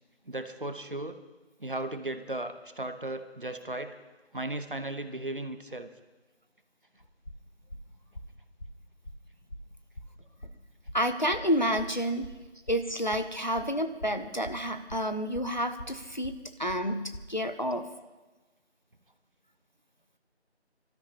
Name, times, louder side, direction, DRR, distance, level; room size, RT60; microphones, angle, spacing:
voice 1, 0.3-1.1 1.6-4.0 4.3-5.9, right 1 dB, 50° right, 9 dB, 0.9 m, -36 dB
sound 1, 7.0-17.3, left 1 dB, 60° left, 1.5 m, -44 dB
voice 2, 10.9-12.3 12.7-17.8, equal, 40° left, 8 dB, 0.7 m, -29 dB
27.0 x 13.0 x 2.9 m, 1.2 s
figure-of-eight pair, 175°, 34 cm